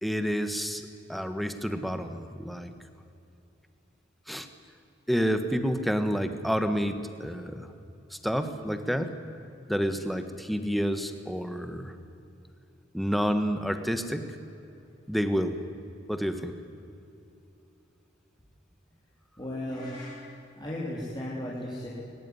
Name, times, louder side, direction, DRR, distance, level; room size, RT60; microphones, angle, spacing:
voice 1, 0.0-2.7 4.3-4.5 5.1-7.7 8.1-9.2 9.7-11.9 12.9-14.4 15.1-15.6 16.1-16.5, equal, ahead, 9 dB, 1.4 m, -29 dB
voice 2, 19.4-21.9, left 1 dB, 20° left, -6 dB, 3.6 m, -36 dB
22.0 x 21.0 x 9.8 m, 2.8 s
head